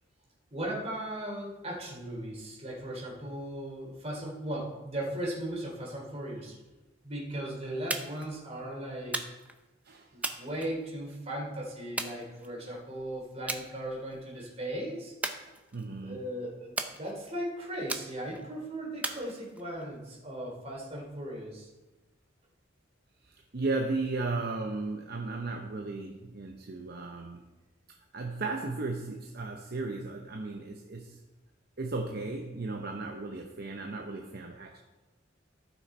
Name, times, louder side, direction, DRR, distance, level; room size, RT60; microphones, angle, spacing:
voice 1, 0.5-6.5 7.0-9.3 10.1-15.1 16.0-21.7, right 1 dB, 35° right, -2 dB, 3.0 m, -37 dB
sound 1, 7.9-8.3 9.1-9.6 10.2-11.2 12.0-12.8 13.5-13.7 14.1-14.4 15.2-16.0 16.8-17.4 17.9-18.4 19.0-19.8, right 2 dB, 5° right, 0.6 m, -37 dB
voice 2, 15.7-16.2 23.2-27.4 28.1-31.2 31.8-34.8, right 3 dB, 50° right, 2 dB, 0.8 m, -35 dB
14.5 x 6.3 x 4.3 m, 1.1 s
head